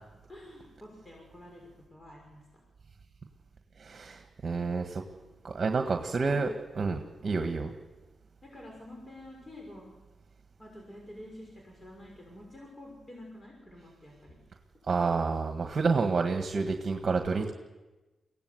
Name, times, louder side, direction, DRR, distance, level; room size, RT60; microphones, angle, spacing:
voice 1, 0.3-1.6 1.9-2.6 4.9-5.4 6.1-6.4 7.2-7.5 8.4-9.9 10.6-14.4, left 1 dB, 25° left, 0 dB, 5.9 m, -49 dB
voice 2, 3.8-5.0 5.4-6.5 6.7-7.7 14.9-17.5, right 4 dB, 50° right, 5 dB, 1.6 m, -29 dB
22.5 x 17.0 x 8.0 m, 1.2 s
cardioid pair, 60°, 0 cm